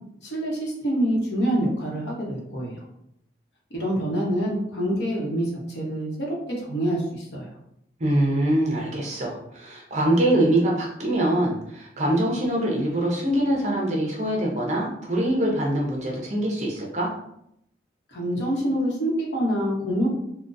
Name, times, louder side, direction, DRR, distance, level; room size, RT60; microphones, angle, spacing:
voice 1, 0.2-2.8 3.7-7.5 18.1-20.1, equal, 70° left, -3 dB, 1.0 m, -26 dB
voice 2, 8.0-17.1, right 1 dB, 40° right, -2 dB, 0.7 m, -24 dB
3.8 x 2.2 x 2.5 m, 0.77 s
head